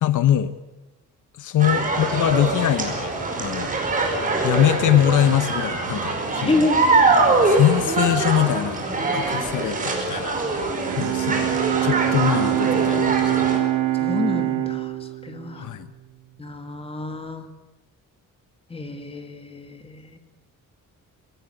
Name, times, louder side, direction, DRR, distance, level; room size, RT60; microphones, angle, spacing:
voice 1, 0.0-0.5 1.4-3.7 4.4-6.7 7.4-10.4 11.0-13.5 15.6-15.9, left 11 dB, 65° left, 12 dB, 1.1 m, -23 dB
sound 1, 1.6-13.6, right 3 dB, 25° right, 5.0 m, -23 dB
voice 2, 6.4-6.8 13.9-15.7 16.4-17.5 18.7-20.2, left 2 dB, 15° left, 6 dB, 2.3 m, -28 dB
Bowed string instrument, 10.8-16.4, right 15 dB, 85° right, 3.0 m, -24 dB
21.0 x 18.0 x 9.7 m, 1.0 s
cardioid pair, 170°, 33 cm